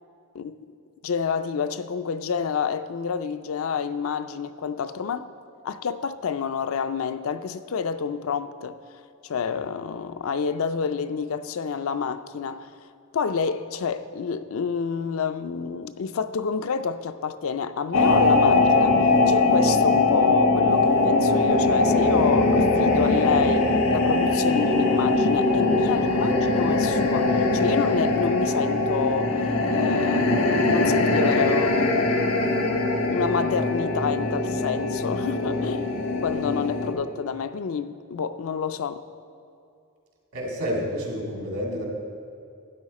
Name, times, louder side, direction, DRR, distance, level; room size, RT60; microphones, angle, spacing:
voice 1, 0.3-0.7 1.0-5.3 5.6-8.8 9.2-12.7 13.1-19.0 19.3-32.3 33.1-35.9 36.2-39.0, left 6 dB, 65° left, 0.4 m, -28 dB
sound 1, 17.9-36.9, left 2 dB, 80° left, 1.3 m, -21 dB
voice 2, 40.3-41.8, equal, 75° right, 2.3 m, -29 dB
12.0 x 9.1 x 4.2 m
head